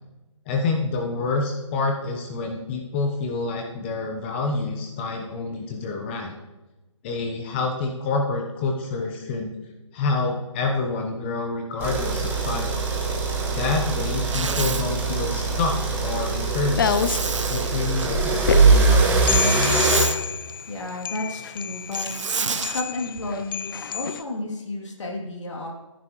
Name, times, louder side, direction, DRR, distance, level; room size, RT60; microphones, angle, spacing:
voice 1, 0.5-6.3 7.0-9.5 9.9-12.8 13.5-15.7 16.0-16.9 17.5-19.2, left 3 dB, 20° left, 2 dB, 0.9 m, -27 dB
sound 1, 11.8-20.0, right 4 dB, 10° right, 1.4 m, -22 dB
Zipper (clothing), 14.2-14.9 16.8-18.1 19.5-20.2 21.9-22.8, right 5 dB, 70° right, 0.9 m, -29 dB
sound 2, 15.5-24.2, left 7 dB, 45° left, 0.5 m, -29 dB
voice 2, 20.7-22.1 22.6-25.7, left 2 dB, 65° left, 0 dB, 2.8 m, -32 dB
15.5 x 10.0 x 3.1 m, 1.1 s
hypercardioid pair, 155°, 16 cm